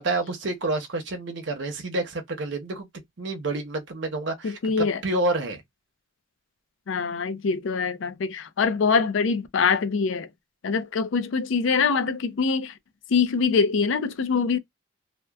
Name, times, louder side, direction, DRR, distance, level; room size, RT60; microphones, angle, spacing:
voice 1, 0.0-2.9 3.2-5.6, right 2 dB, 60° right, 0.7 m, -29 dB
voice 2, 4.4-5.0 6.9-10.3 10.6-12.8 13.1-14.6, left 5 dB, 70° left, 0.4 m, -24 dB
2.8 x 2.1 x 2.2 m
head